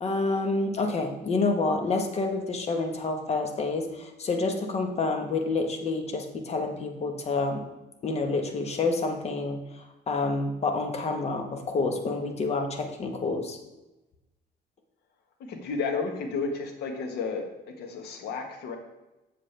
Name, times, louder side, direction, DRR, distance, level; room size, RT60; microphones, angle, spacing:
voice 1, 0.0-7.6 8.0-13.6, left 3 dB, 40° left, 4 dB, 1.3 m, -28 dB
voice 2, 15.5-17.5 17.8-18.8, left 4 dB, 75° left, 4 dB, 1.4 m, -32 dB
7.5 x 7.4 x 3.4 m, 1.0 s
cardioid pair, 110°, 17 cm